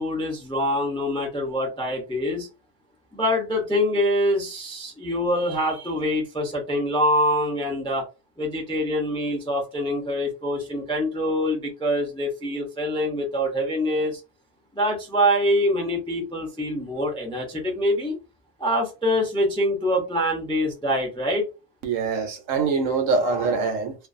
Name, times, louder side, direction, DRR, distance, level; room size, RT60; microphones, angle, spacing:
voice 1, 0.0-2.5 3.1-8.0 8.4-14.2 14.7-18.1 18.6-21.5, equal, 5° left, 0.4 m, -25 dB
voice 2, 21.8-23.9, right 4 dB, 75° right, 1.0 m, -24 dB
2.5 x 2.3 x 2.5 m
omnidirectional pair, 1.4 m